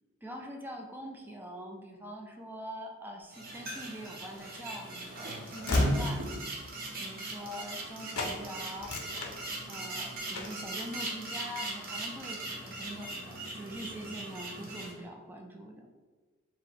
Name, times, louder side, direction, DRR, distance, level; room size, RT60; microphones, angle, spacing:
voice 1, 0.2-6.3 7.0-8.9 9.7-15.9, equal, 10° right, 2 dB, 0.4 m, -44 dB
sound 1, 3.3-14.9, right 1 dB, 45° right, 0.8 m, -39 dB
Train / Slam, 4.2-8.4 8.7-9.9 10.3-10.7, left 2 dB, 75° left, 0.6 m, -35 dB
4.6 x 2.1 x 4.1 m, 1.4 s
head